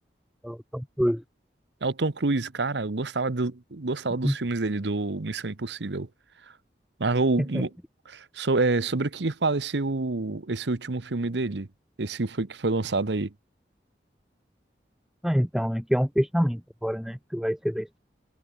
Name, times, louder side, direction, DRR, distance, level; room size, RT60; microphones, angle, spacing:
voice 1, 0.4-1.2 4.2-4.3 7.5-7.6 15.2-18.0, equal, ahead, 0.9 m, -26 dB
voice 2, 1.8-6.1 7.0-7.7 8.1-11.7 12.0-13.3, right 3 dB, 85° right, 1.0 m, -27 dB
head